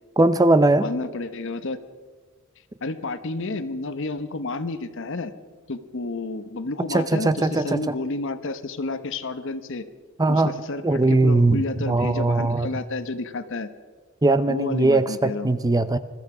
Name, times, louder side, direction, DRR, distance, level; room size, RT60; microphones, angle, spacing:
voice 1, 0.2-0.9 6.9-7.8 10.2-10.5 10.8-12.7 14.2-16.0, right 2 dB, 15° right, 13 dB, 0.6 m, -20 dB
voice 2, 0.8-1.8 2.8-5.3 5.7-9.8 10.3-13.7 14.5-15.5, left 3 dB, 60° left, 12 dB, 1.0 m, -30 dB
21.0 x 14.0 x 4.9 m, 1.5 s
head